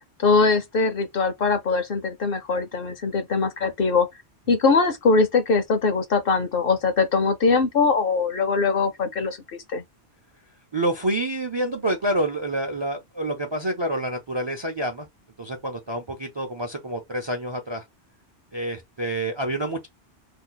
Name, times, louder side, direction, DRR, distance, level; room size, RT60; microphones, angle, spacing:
voice 1, 0.2-4.1 4.5-9.4 9.7-9.8, left 4 dB, 60° left, 0.8 m, -21 dB
voice 2, 10.7-15.1 15.4-17.8 18.5-19.9, right 1 dB, 35° right, 0.4 m, -27 dB
2.7 x 2.3 x 3.8 m
omnidirectional pair, 1.2 m